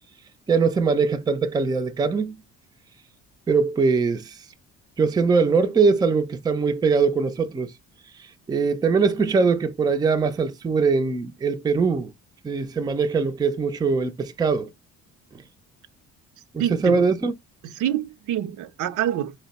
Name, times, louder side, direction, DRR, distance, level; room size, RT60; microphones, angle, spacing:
voice 1, 0.5-2.4 3.5-4.3 5.0-7.7 8.5-12.1 12.4-14.7 16.5-17.3, right 4 dB, 15° right, 0.4 m, -22 dB
voice 2, 16.6-17.1 17.6-19.3, right 11 dB, 75° right, 0.6 m, -26 dB
4.3 x 2.0 x 4.0 m
cardioid pair, 125°, 30 cm